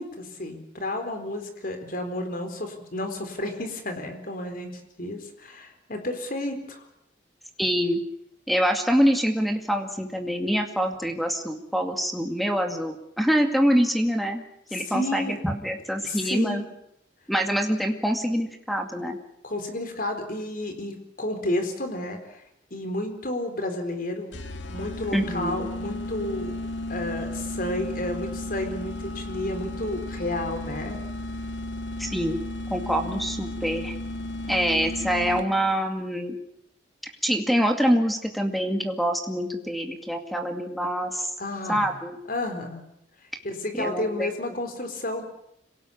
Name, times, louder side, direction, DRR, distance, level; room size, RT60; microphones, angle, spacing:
voice 1, 0.0-6.8 14.7-15.4 16.0-16.8 19.4-22.4 22.7-24.3 24.7-26.5 26.9-31.0 41.4-42.0 42.3-42.8 43.4-45.2, left 1 dB, 50° left, 6 dB, 4.3 m, -31 dB
voice 2, 7.6-8.0 8.5-14.4 14.7-16.6 17.3-19.2 25.1-25.7 32.0-32.4 32.7-33.9 34.5-36.4 37.2-41.3 41.7-42.2 43.7-44.3, equal, ahead, 5 dB, 2.2 m, -25 dB
sound 1, 24.3-35.7, left 1 dB, 85° left, 2.0 m, -34 dB
26.0 x 18.0 x 8.7 m, 0.77 s
head